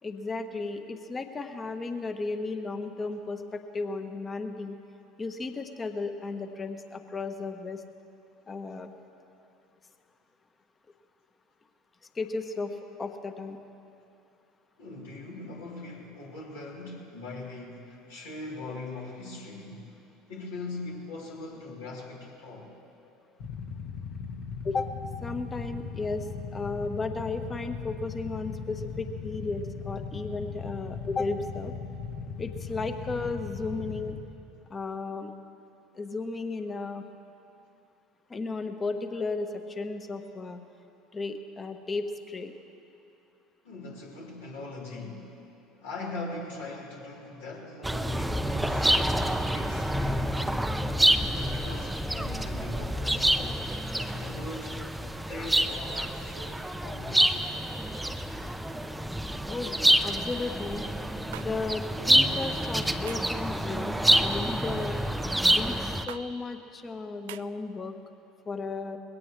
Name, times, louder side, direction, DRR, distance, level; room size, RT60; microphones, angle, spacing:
voice 1, 0.0-4.8 5.2-7.8 8.5-8.9 12.1-13.6 24.6-24.9 25.2-31.7 32.4-34.2 34.7-35.3 35.9-37.0 38.3-40.6 41.1-42.5 59.5-59.8 60.0-60.8 61.4-65.0 65.5-68.0 68.5-69.0, left 3 dB, 25° left, 7 dB, 1.2 m, -34 dB
voice 2, 14.8-20.0 20.3-22.7 43.6-45.3 45.8-50.6 51.3-53.6 54.0-54.8 55.3-57.5, left 2 dB, 75° left, -5 dB, 3.5 m, -41 dB
Motorcycle / Idling, 23.4-34.1, left 5 dB, 60° left, 2.1 m, -38 dB
sound 1, 47.8-66.0, right 1 dB, 5° right, 0.7 m, -27 dB
sound 2, 61.3-61.5 63.1-63.4 64.7-65.0 66.1-66.2 67.3-67.4, right 16 dB, 70° right, 0.3 m, -42 dB
21.0 x 17.0 x 3.3 m, 2.7 s
figure-of-eight pair, 70°, 0 cm